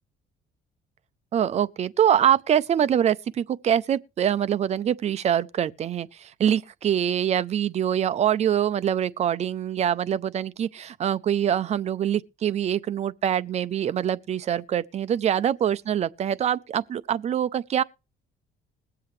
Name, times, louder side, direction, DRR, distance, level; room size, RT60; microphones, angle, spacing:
voice 1, 1.3-17.8, right 9 dB, 35° right, 0.5 m, -24 dB
21.0 x 7.8 x 3.2 m
cardioid pair, 155°, 18 cm